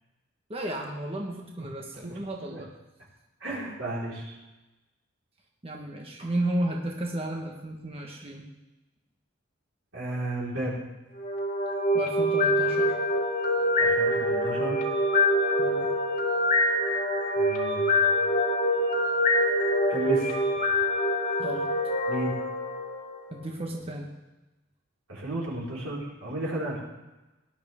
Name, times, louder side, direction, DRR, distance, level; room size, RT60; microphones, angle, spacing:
voice 1, 0.5-2.7 5.6-8.4 11.9-13.0 15.6-15.9 21.4-21.7 23.3-24.1, right 1 dB, 30° right, 0 dB, 1.4 m, -33 dB
voice 2, 3.4-4.3 9.9-10.8 13.8-14.8 17.3-18.0 19.9-20.4 22.1-22.3 25.1-26.8, right 1 dB, 90° right, -5 dB, 4.4 m, -33 dB
sound 1, 11.2-23.3, left 1 dB, 40° left, 2.0 m, -25 dB
17.5 x 11.0 x 3.6 m, 1.1 s
head